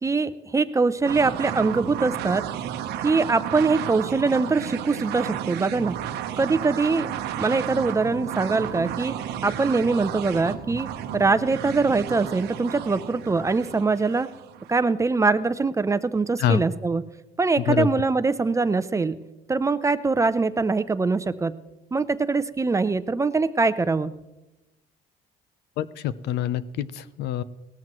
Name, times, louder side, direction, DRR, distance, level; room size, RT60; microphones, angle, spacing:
voice 1, 0.0-2.4 3.0-5.9 6.4-7.1 7.4-9.1 9.4-10.9 11.1-14.3 14.7-17.0 17.4-19.1 19.5-21.6 21.9-24.1, right 4 dB, 20° right, 13 dB, 0.5 m, -23 dB
sound 1, 1.0-14.8, right 10 dB, 80° right, 0.9 m, -33 dB
voice 2, 25.8-27.4, left 9 dB, 80° left, 16 dB, 0.6 m, -25 dB
18.0 x 13.5 x 3.1 m, 1.0 s
cardioid pair, 110°, 17 cm